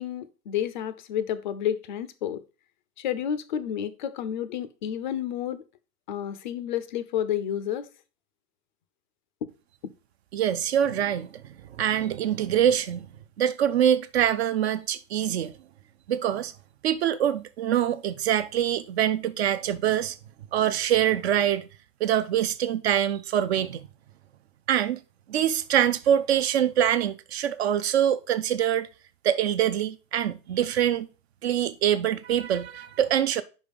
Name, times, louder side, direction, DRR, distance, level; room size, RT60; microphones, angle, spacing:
voice 1, 0.0-2.4 3.0-5.6 6.1-7.9 9.4-9.5, left 10 dB, 35° left, 0.4 m, -30 dB
voice 2, 10.3-11.3 11.8-13.1 13.4-15.5 16.1-16.5 16.8-20.2 20.5-21.7 22.0-23.8 24.7-25.0 25.3-28.9 29.2-31.1 31.4-33.4, right 10 dB, 45° right, 0.4 m, -24 dB
5.4 x 4.8 x 5.1 m
hypercardioid pair, 135°, 47 cm